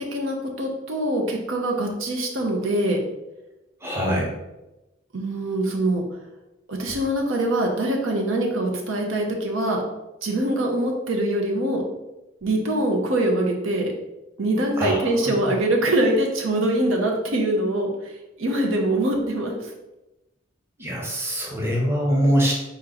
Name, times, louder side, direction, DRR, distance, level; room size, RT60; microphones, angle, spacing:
voice 1, 0.1-3.0 5.1-6.0 6.7-9.8 10.2-11.8 12.4-13.9 14.4-17.9 18.4-19.5, right 1 dB, 80° right, 1 dB, 0.8 m, -23 dB
voice 2, 3.8-4.3 14.8-15.1 20.8-22.5, equal, 10° right, -3 dB, 0.9 m, -23 dB
4.4 x 3.0 x 3.8 m, 0.98 s
head